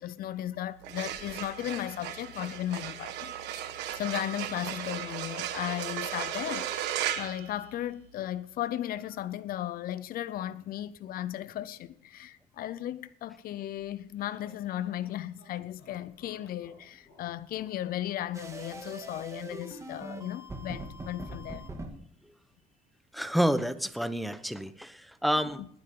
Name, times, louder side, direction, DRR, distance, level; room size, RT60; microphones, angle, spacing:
voice 1, 0.0-3.4 3.9-6.7 7.2-21.7 25.6-25.7, left 12 dB, 60° left, 0.6 m, -36 dB
sound 1, 0.7-8.2, right 11 dB, 85° right, 1.4 m, -36 dB
sound 2, 13.8-18.9, left 2 dB, 80° left, 6.9 m, -59 dB
sound 3, 18.3-21.9, right 2 dB, 20° right, 2.3 m, -42 dB
voice 2, 23.1-25.6, equal, ahead, 1.0 m, -29 dB
20.0 x 10.0 x 3.8 m
cardioid pair, 110°, 17 cm